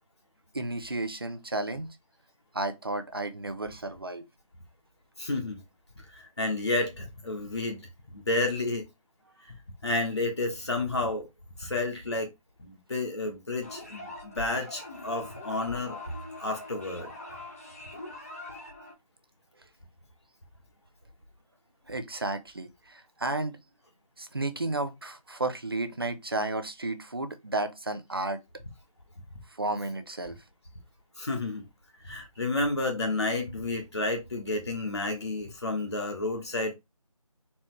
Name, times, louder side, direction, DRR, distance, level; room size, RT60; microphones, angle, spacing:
voice 1, 0.5-2.0 2.5-4.2 21.9-23.6 24.2-28.4 29.5-30.4, right 2 dB, 40° right, 0.6 m, -32 dB
voice 2, 5.2-5.6 6.1-7.8 8.1-8.9 9.8-11.3 11.6-12.3 12.6-16.0 16.4-17.1 31.2-31.7 32.0-36.7, left 2 dB, 45° left, 1.2 m, -31 dB
sound 1, 13.6-18.9, left 1 dB, 25° left, 1.1 m, -42 dB
4.2 x 3.2 x 3.0 m
figure-of-eight pair, 175°, 19 cm